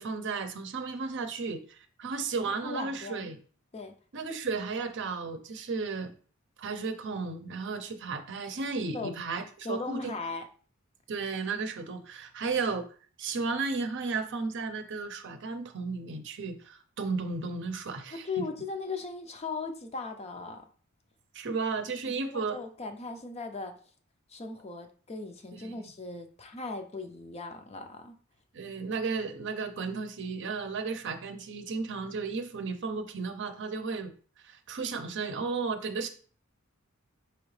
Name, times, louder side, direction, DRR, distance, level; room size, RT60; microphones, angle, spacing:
voice 1, 0.0-3.4 4.1-6.1 6.6-10.1 11.1-12.8 13.2-18.4 21.3-22.6 25.5-25.7 28.5-34.1 34.4-36.1, right 4 dB, 60° right, 7 dB, 0.6 m, -34 dB
voice 2, 2.4-3.3 3.7-3.9 8.9-9.1 9.6-10.4 18.2-20.6 22.2-23.7 24.3-28.1, left 3 dB, 30° left, 5 dB, 0.5 m, -38 dB
4.8 x 2.9 x 3.2 m, 0.43 s
head